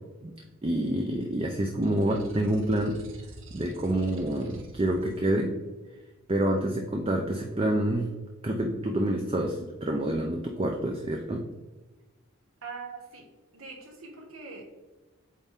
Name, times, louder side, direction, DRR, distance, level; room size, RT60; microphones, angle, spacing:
voice 1, 0.6-3.0 3.5-5.5 6.3-8.1 8.4-11.4, right 1 dB, 25° right, 2 dB, 0.5 m, -27 dB
sound 1, 1.8-5.2, right 1 dB, 65° right, 1.0 m, -47 dB
voice 2, 12.6-13.3 13.5-14.7, right 4 dB, 85° right, 1 dB, 1.6 m, -42 dB
8.3 x 3.5 x 3.6 m, 1.2 s
head